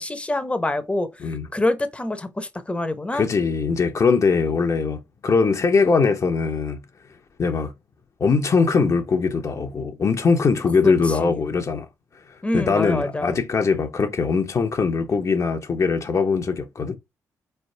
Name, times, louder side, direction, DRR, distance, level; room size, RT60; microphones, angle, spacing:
voice 1, 0.0-3.2 10.8-11.4 12.4-13.4, left 2 dB, 15° left, 0.8 m, -26 dB
voice 2, 3.1-6.8 7.4-7.7 8.2-11.9 12.5-17.0, left 5 dB, 50° left, 0.8 m, -21 dB
4.0 x 3.3 x 2.7 m
supercardioid pair, 55°, 7 cm